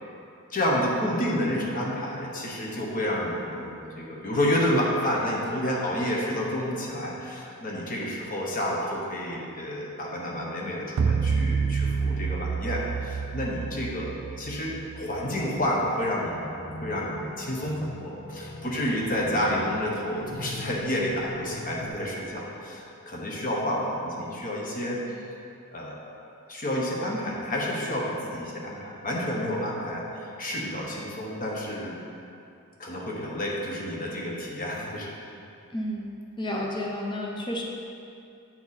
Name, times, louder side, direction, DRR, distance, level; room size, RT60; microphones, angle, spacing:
voice 1, 0.5-16.5 16.8-25.0 25.7-26.1 26.5-32.0 32.8-35.1, equal, 40° left, -3 dB, 1.0 m, -29 dB
sound 1, 11.0-15.4, right 5 dB, 75° right, 0.3 m, -28 dB
sound 2, 16.2-21.9, left 1 dB, 60° left, 0.7 m, -41 dB
voice 2, 35.7-36.1 36.4-37.6, left 1 dB, 20° left, -1 dB, 0.7 m, -31 dB
8.6 x 4.5 x 4.1 m, 2.6 s
head